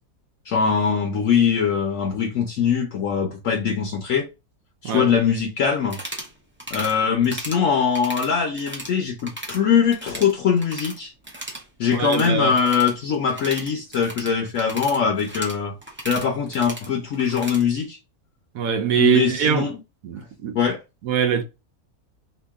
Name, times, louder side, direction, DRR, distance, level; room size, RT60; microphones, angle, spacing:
voice 1, 0.5-4.3 4.8-6.0 6.7-11.1 11.8-15.7 16.1-18.0 19.0-19.8 20.5-20.8, left 6 dB, 65° left, 1.0 m, -22 dB
sound 1, 5.8-6.3 6.6-6.9 7.2-7.6 7.9-8.9 9.2-9.6 9.9-11.0 11.2-17.6, right 1 dB, 15° right, 0.4 m, -36 dB
voice 2, 11.9-12.6 18.5-19.7 20.0-20.6 21.0-21.4, right 8 dB, 70° right, 1.0 m, -22 dB
2.9 x 2.6 x 3.5 m
omnidirectional pair, 1.6 m